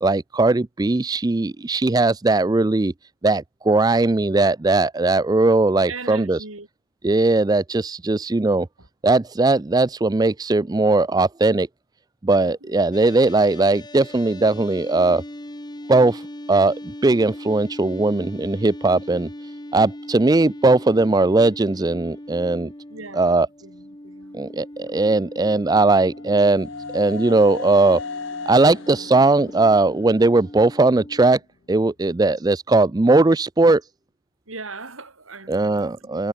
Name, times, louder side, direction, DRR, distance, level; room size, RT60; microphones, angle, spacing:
voice 1, 0.0-2.9 3.2-6.4 7.0-8.7 9.0-11.7 12.2-15.2 15.9-16.8 17.0-22.7 23.1-23.5 24.3-26.7 26.9-28.0 28.5-31.4 31.7-33.8 35.5-36.3, right 2 dB, 20° right, 0.4 m, -19 dB
voice 2, 5.9-6.7 8.8-8.9 12.4-12.8 22.9-24.4 34.5-36.2, right 3 dB, 85° right, 6.6 m, -39 dB
sound 1, 12.9-31.3, left 1 dB, 20° left, 1.6 m, -39 dB
sound 2, 25.3-31.2, left 4 dB, 70° left, 1.2 m, -37 dB
head